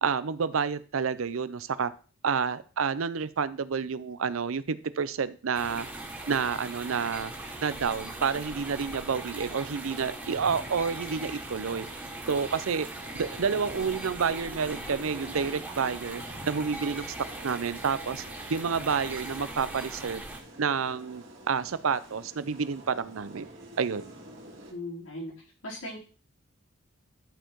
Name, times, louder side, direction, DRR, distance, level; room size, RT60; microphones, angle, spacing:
voice 1, 0.0-1.9 2.2-5.9 6.3-7.3 7.6-11.9 12.3-12.9 13.1-17.1 17.4-18.2 18.5-20.2 20.6-23.5 23.8-24.1, right 6 dB, 80° right, 15 dB, 0.6 m, -29 dB
sound 1, 5.5-20.4, right 2 dB, 10° right, 1.7 m, -40 dB
sound 2, 7.3-24.7, right 1 dB, 60° right, 2.7 m, -49 dB
voice 2, 24.7-25.3 25.6-26.0, left 1 dB, 85° left, -4 dB, 4.0 m, -37 dB
11.5 x 4.6 x 4.5 m, 0.38 s
head